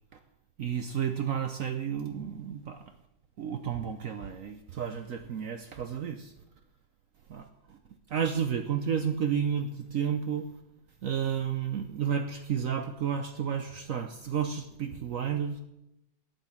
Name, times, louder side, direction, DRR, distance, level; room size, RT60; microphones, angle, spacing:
voice 1, 0.6-2.8 3.4-6.3 7.3-7.8 8.1-10.5 11.0-15.6, right 8 dB, 65° right, 7 dB, 0.9 m, -31 dB
9.2 x 8.2 x 7.1 m, 0.87 s
omnidirectional pair, 2.0 m